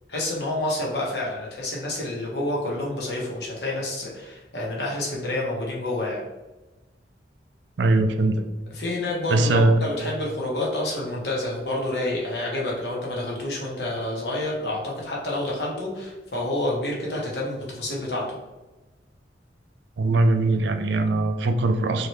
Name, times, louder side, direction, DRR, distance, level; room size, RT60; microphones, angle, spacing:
voice 1, 0.1-6.2 8.7-18.4, left 1 dB, 60° left, -4 dB, 1.2 m, -28 dB
voice 2, 7.8-8.4 9.3-9.8 20.0-22.1, right 2 dB, 75° right, 7 dB, 0.4 m, -21 dB
3.8 x 3.1 x 3.1 m, 1.1 s
head